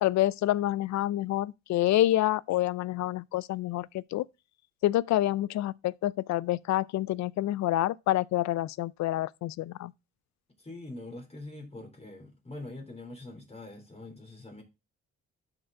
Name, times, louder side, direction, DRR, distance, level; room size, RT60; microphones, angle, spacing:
voice 1, 0.0-4.2 4.8-9.9, left 14 dB, 65° left, 0.5 m, -27 dB
voice 2, 10.6-14.6, left 2 dB, 20° left, 3.2 m, -44 dB
11.5 x 4.5 x 3.7 m
cardioid pair, 90°, 30 cm